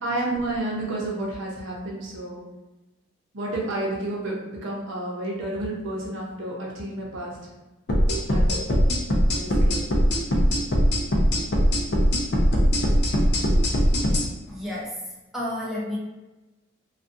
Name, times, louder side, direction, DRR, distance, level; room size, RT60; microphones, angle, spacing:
voice 1, 0.0-2.4 3.3-7.5 8.3-8.7 9.3-9.9, right 1 dB, 80° right, -3 dB, 0.7 m, -30 dB
sound 1, 7.9-14.3, equal, 55° left, 0.5 m, -20 dB
voice 2, 14.5-15.0 15.3-16.0, left 1 dB, ahead, -6 dB, 0.4 m, -30 dB
2.5 x 2.3 x 2.5 m, 1.1 s
head